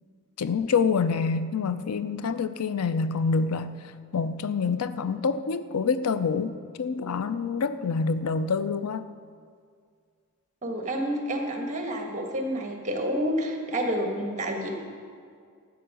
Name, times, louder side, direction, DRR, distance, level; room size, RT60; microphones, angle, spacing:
voice 1, 0.4-3.8 4.1-9.1, left 5 dB, 90° left, 12 dB, 0.5 m, -27 dB
voice 2, 10.6-14.7, equal, 35° right, 2 dB, 1.6 m, -29 dB
12.5 x 8.1 x 6.2 m, 2.1 s
head